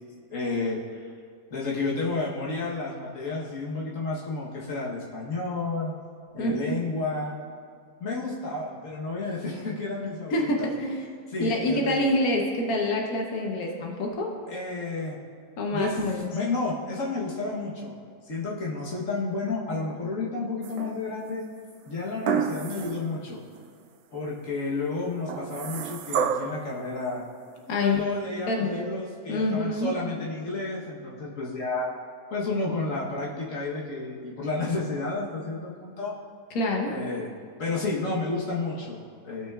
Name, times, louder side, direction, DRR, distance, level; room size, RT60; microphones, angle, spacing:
voice 1, 0.3-1.0 1.5-5.9 6.3-7.4 8.0-10.7 11.3-12.0 14.5-15.2 15.7-16.0 16.3-17.9 18.2-21.4 21.9-23.4 24.1-27.2 27.8-31.9 32.3-36.1 36.9-37.3 37.6-39.5, left 3 dB, 60° left, -4 dB, 1.5 m, -31 dB
voice 2, 10.3-11.1 11.4-14.3 15.6-16.3 27.7-28.0 28.5-28.9 29.3-29.9 36.5-36.9, left 1 dB, 80° left, 1 dB, 1.5 m, -26 dB
sound 1, 20.6-21.2 22.2-23.1 23.5-23.6 25.3-26.6 27.8-27.9, right 7 dB, 85° right, 1.1 m, -29 dB
15.5 x 5.9 x 2.4 m, 2.2 s
omnidirectional pair, 1.5 m